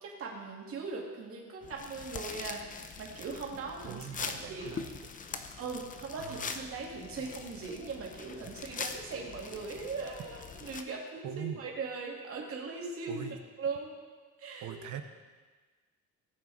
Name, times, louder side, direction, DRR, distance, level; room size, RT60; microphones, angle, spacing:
voice 1, 0.0-4.8 5.6-14.0 14.4-14.8, right 4 dB, 50° right, -2 dB, 2.4 m, -40 dB
Pas sur feuilles mortes, 1.6-10.8, left 5 dB, 25° left, 0.7 m, -43 dB
voice 2, 3.9-4.9 5.3-5.5 6.2-6.6 11.2-11.6 13.1-13.4 14.6-15.0, right 9 dB, 85° right, 7 dB, 1.0 m, -41 dB
18.5 x 7.8 x 4.2 m, 1.4 s
cardioid pair, 175°, 29 cm